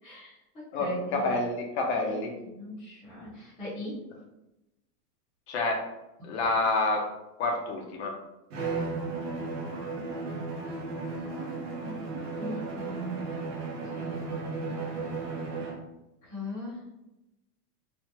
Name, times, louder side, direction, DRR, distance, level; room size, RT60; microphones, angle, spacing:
voice 1, 0.0-1.4 1.9-2.2 2.4-4.0 6.3-6.5 9.8-10.4 11.1-11.6 11.8-13.2 13.9-14.4 16.2-16.8, left 1 dB, 10° left, -14 dB, 1.3 m, -40 dB
voice 2, 0.7-2.4 5.5-5.9 6.2-7.1 7.4-8.2, left 2 dB, 45° left, 1 dB, 0.7 m, -28 dB
Bowed string instrument, 8.5-15.9, right 3 dB, 45° right, 0.6 m, -35 dB
3.3 x 2.1 x 2.9 m, 0.92 s
supercardioid pair, 170°, 47 cm